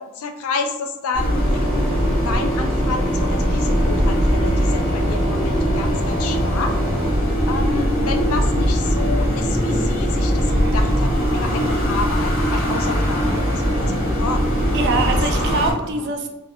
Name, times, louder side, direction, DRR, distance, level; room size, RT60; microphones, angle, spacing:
voice 1, 0.0-6.7 7.5-14.5 15.1-15.2 16.0-16.1, left 4 dB, 75° left, 5 dB, 0.4 m, -29 dB
sound 1, 1.1-15.7, equal, 45° left, 1.2 m, -20 dB
sound 2, 1.4-7.1, right 1 dB, ahead, 0.5 m, -31 dB
voice 2, 10.5-10.8 12.5-12.7 14.7-16.3, right 3 dB, 55° right, 4 dB, 0.4 m, -24 dB
2.4 x 2.3 x 3.4 m, 0.93 s
head